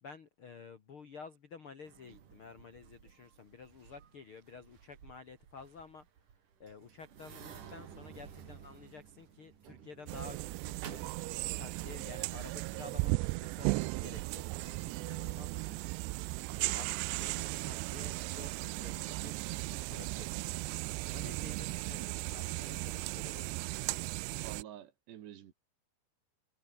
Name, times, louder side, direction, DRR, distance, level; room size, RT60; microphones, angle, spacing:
voice 1, 0.0-6.1 6.6-11.0 11.6-15.9 16.5-19.3 19.6-20.6 21.1-23.7, left 5 dB, 90° left, 1.1 m, -52 dB
sound 1, 1.8-11.9, right 8 dB, 50° right, 3.7 m, -53 dB
sound 2, 10.1-24.6, right 25 dB, 90° right, 2.5 m, -36 dB
voice 2, 24.4-25.5, right 11 dB, 65° right, 3.9 m, -49 dB
omnidirectional pair, 5.5 m